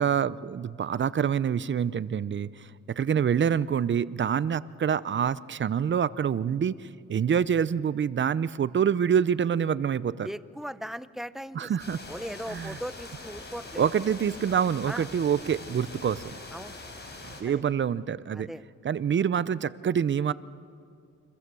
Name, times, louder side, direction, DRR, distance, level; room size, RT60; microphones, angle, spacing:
voice 1, 0.0-10.3 11.5-12.0 12.5-12.8 13.8-16.4 17.4-18.5 18.8-20.3, right 8 dB, 40° right, 17 dB, 0.7 m, -26 dB
voice 2, 10.2-11.7 12.1-13.9 14.9-15.1 16.5-16.8 17.5-17.6 18.3-18.6, equal, ahead, 14 dB, 0.7 m, -38 dB
sound 1, 11.8-17.4, left 2 dB, 35° left, 6.1 m, -43 dB
29.5 x 25.0 x 7.0 m, 2.3 s
cardioid pair, 90°, 30 cm